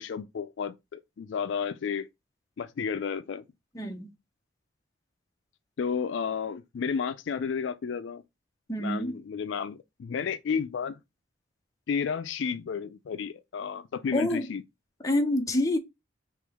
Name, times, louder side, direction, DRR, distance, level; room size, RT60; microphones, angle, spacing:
voice 1, 0.0-2.1 2.6-3.4 5.8-8.2 8.8-11.0 11.9-14.6, left 6 dB, 65° left, 0.4 m, -32 dB
voice 2, 3.7-4.1 8.7-9.2 14.1-14.5 15.0-15.8, left 1 dB, 15° left, 0.6 m, -27 dB
3.7 x 2.9 x 4.7 m
head